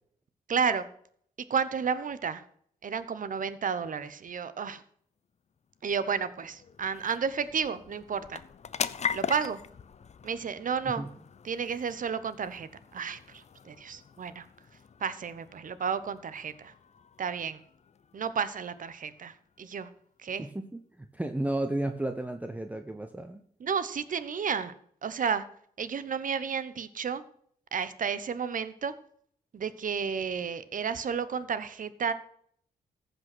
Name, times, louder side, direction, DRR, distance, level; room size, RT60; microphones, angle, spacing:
voice 1, 0.5-0.9 1.5-2.4 2.8-4.8 5.8-8.4 9.1-9.6 10.2-11.0 11.4-14.4 15.0-16.7 17.2-17.6 18.1-19.9 20.2-20.5 23.6-24.7 25.0-25.4 25.8-27.2 27.7-28.9 29.5-32.1, right 6 dB, 55° right, 15 dB, 1.0 m, -32 dB
sound 1, 5.3-20.2, left 7 dB, 45° left, 0.6 m, -42 dB
voice 2, 20.4-23.4, right 1 dB, 10° right, 7 dB, 0.9 m, -33 dB
14.5 x 5.4 x 6.2 m, 0.64 s
cardioid pair, 80°, 16 cm